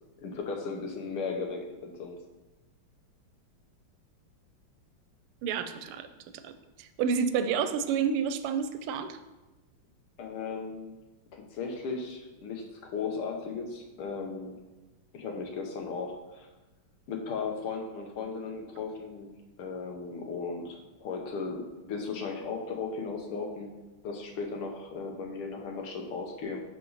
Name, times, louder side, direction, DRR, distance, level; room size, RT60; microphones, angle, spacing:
voice 1, 0.2-2.2 10.2-10.9 11.3-14.6 15.1-16.5 17.1-19.3 19.6-21.6 21.9-23.7 24.0-26.6, left 4 dB, 80° left, 2 dB, 2.0 m, -36 dB
voice 2, 5.4-6.1 6.3-6.5 6.8-9.2, right 7 dB, 85° right, 11 dB, 1.5 m, -29 dB
11.0 x 4.5 x 4.0 m, 1.1 s
omnidirectional pair, 2.4 m